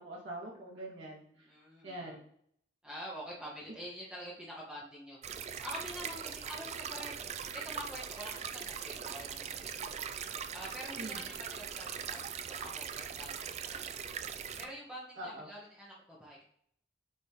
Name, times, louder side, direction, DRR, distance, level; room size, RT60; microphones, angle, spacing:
voice 1, 0.0-1.5 1.8-2.2 11.0-11.2 15.2-15.5, right 1 dB, 90° right, -5 dB, 2.3 m, -44 dB
voice 2, 1.3-2.2 2.8-5.2 5.6-7.2 7.5-10.0 10.5-13.9 14.6-16.4, equal, 5° right, -7 dB, 1.6 m, -46 dB
sound 1, 5.2-14.7, right 7 dB, 35° right, 0.3 m, -41 dB
8.7 x 3.9 x 3.2 m, 0.68 s
head